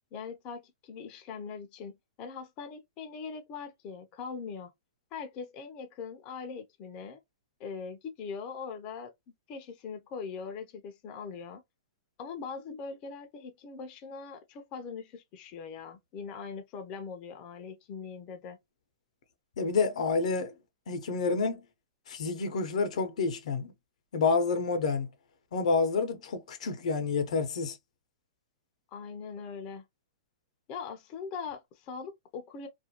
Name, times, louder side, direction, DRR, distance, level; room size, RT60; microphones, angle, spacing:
voice 1, 0.1-4.7 5.1-7.2 7.6-9.1 9.5-11.6 12.2-18.6 28.9-29.8 30.7-32.7, left 5 dB, 30° left, 0.5 m, -41 dB
voice 2, 19.6-20.5 20.9-21.6 22.1-23.7 24.1-25.1 25.5-27.8, left 4 dB, 75° left, 0.6 m, -28 dB
2.4 x 2.1 x 2.8 m
hypercardioid pair, 150°, 4 cm